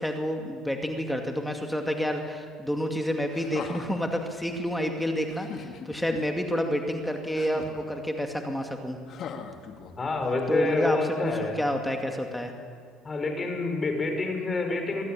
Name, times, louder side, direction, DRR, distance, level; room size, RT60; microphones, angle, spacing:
voice 1, 0.0-9.0 10.5-12.5, equal, 5° left, 3 dB, 2.2 m, -29 dB
sound 1, 3.3-4.1 5.3-6.2 7.3-8.0 9.1-10.2 11.3-11.4, left 7 dB, 50° left, 1.9 m, -40 dB
voice 2, 10.0-11.6 13.0-15.0, left 3 dB, 30° left, 4 dB, 5.1 m, -28 dB
22.5 x 13.5 x 8.8 m, 2.2 s
supercardioid pair, 85°, 0 cm